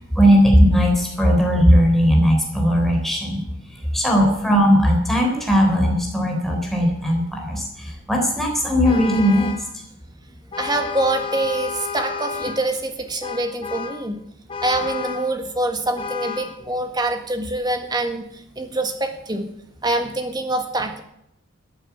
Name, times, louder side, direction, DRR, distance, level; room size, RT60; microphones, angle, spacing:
voice 1, 0.2-3.4 3.9-9.5, equal, ahead, 0 dB, 3.9 m, -17 dB
Vehicle horn car horn honking, 8.8-9.7 10.5-12.7 13.2-14.1 14.5-15.3 16.0-16.6, left 6 dB, 25° left, 1.0 m, -31 dB
voice 2, 10.6-14.2 14.6-18.2 18.5-19.5 19.8-21.0, right 2 dB, 20° right, 6 dB, 1.7 m, -25 dB
14.0 x 8.9 x 8.7 m, 0.78 s
head